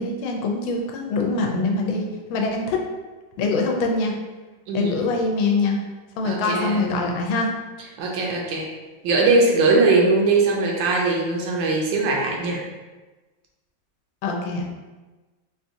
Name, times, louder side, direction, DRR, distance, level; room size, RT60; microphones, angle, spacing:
voice 1, 0.0-2.8 3.4-4.1 4.7-5.8 6.2-7.5 14.2-14.7, left 3 dB, 85° left, 1 dB, 1.4 m, -24 dB
voice 2, 4.7-5.1 6.2-6.8 8.0-8.7 9.0-12.6, right 3 dB, 80° right, -1 dB, 1.3 m, -20 dB
4.4 x 2.3 x 2.6 m, 1.2 s
omnidirectional pair, 2.1 m